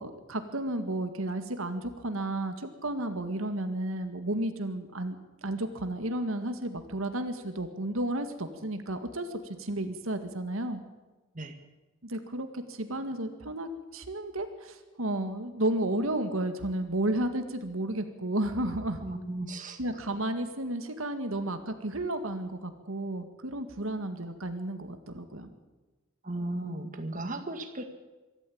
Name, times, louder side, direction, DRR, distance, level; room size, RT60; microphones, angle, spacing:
voice 1, 0.0-5.2 5.4-9.3 9.6-10.8 12.0-19.0 19.8-25.5, right 1 dB, 80° right, 8 dB, 1.9 m, -32 dB
voice 2, 19.0-19.8 26.2-27.8, right 1 dB, 40° right, 6 dB, 1.8 m, -35 dB
24.0 x 13.0 x 8.7 m, 1.2 s
head